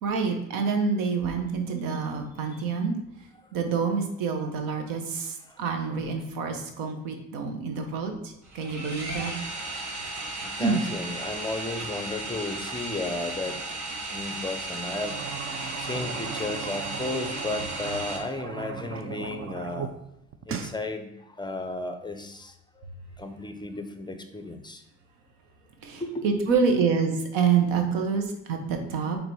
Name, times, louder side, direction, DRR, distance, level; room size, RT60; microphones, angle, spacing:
voice 1, 0.0-3.0 3.5-9.3 10.6-10.9 25.8-29.2, right 5 dB, 90° right, 4 dB, 1.2 m, -27 dB
sound 1, 8.4-18.2, right 2 dB, 60° right, 2.2 m, -35 dB
voice 2, 9.2-13.6 14.1-19.9 20.5-22.9 23.2-24.8 26.0-26.2, left 2 dB, 15° left, 7 dB, 0.7 m, -34 dB
sound 2, 14.8-19.9 20.2-20.8, right 7 dB, 40° right, 0.7 m, -37 dB
4.6 x 3.8 x 5.5 m, 0.85 s
cardioid pair, 90°, 33 cm